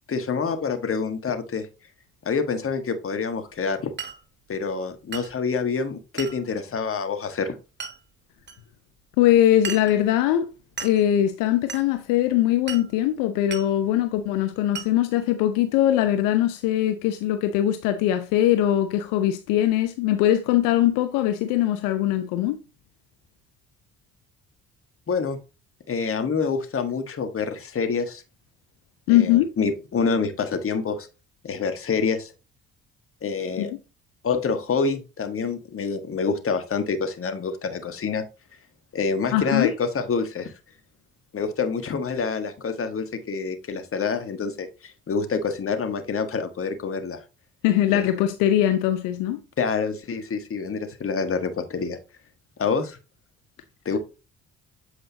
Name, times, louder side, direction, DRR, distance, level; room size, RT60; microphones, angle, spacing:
voice 1, 0.1-1.7 2.2-3.9 4.5-7.6 25.1-25.4 25.9-28.2 29.1-31.1 31.4-32.3 33.2-33.7 34.2-38.2 38.9-40.5 41.3-47.2 47.9-48.0 49.6-52.0 52.6-53.0 53.8-54.0, left 5 dB, 40° left, 1.5 m, -27 dB
Glass, 4.0-4.2 5.1-5.3 6.2-6.4 7.8-8.0 8.5-8.6 9.6-10.0 10.8-11.0 11.7-11.9 12.7-12.9 13.5-13.7 14.7-14.9, right 6 dB, 35° right, 1.2 m, -35 dB
voice 2, 9.2-10.5 10.8-22.6 29.1-29.5 33.6-33.8 39.3-39.7 47.6-49.4, left 12 dB, 75° left, 0.7 m, -21 dB
8.0 x 5.0 x 2.8 m
hypercardioid pair, 50°, 33 cm